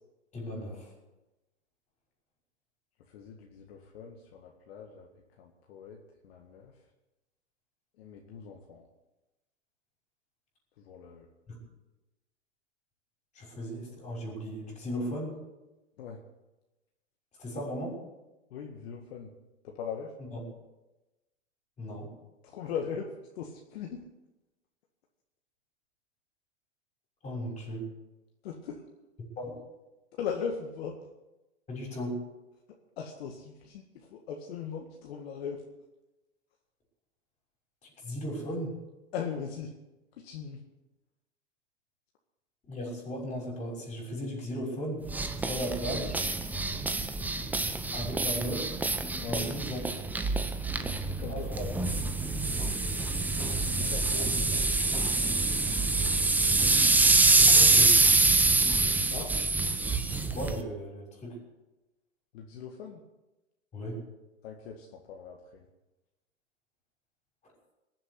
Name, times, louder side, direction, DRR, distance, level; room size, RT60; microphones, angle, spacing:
voice 1, 0.3-0.9 13.3-15.3 17.4-18.0 20.3-20.4 21.8-22.1 27.2-27.9 29.4-29.6 31.7-32.2 38.0-38.7 42.7-45.0 45.4-46.2 47.9-48.7 49.2-49.8 51.3-51.6 54.2-54.3 57.2-57.9 60.3-61.4 63.7-64.0, equal, 20° left, -1 dB, 6.1 m, -36 dB
voice 2, 3.1-5.1 5.4-6.0 6.2-6.7 8.0-8.9 10.8-11.3 16.0-16.2 18.5-19.3 19.6-20.1 22.4-24.0 28.4-28.8 30.2-31.0 33.0-33.8 34.1-35.6 39.1-39.7 40.2-40.6 49.2-49.6 50.7-51.5 53.7-54.3 57.2-57.5 59.1-59.3 62.3-63.0 64.4-65.6, left 6 dB, 55° left, 1 dB, 2.0 m, -39 dB
sound 1, 45.1-60.6, right 3 dB, 5° right, 0.7 m, -25 dB
19.5 x 7.7 x 8.2 m, 1.0 s
hypercardioid pair, 130°, 36 cm